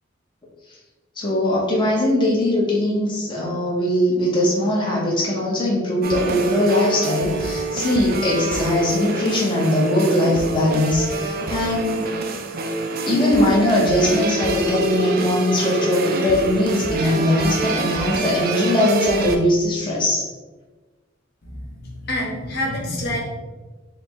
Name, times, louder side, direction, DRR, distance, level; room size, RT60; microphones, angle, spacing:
voice 1, 1.2-12.1 13.1-20.2, left 1 dB, 25° left, -5 dB, 0.7 m, -20 dB
sound 1, 6.0-19.4, right 2 dB, 50° right, 0.4 m, -26 dB
voice 2, 21.4-23.2, left 1 dB, 55° left, -2 dB, 0.9 m, -27 dB
4.4 x 2.1 x 3.4 m, 1.3 s
head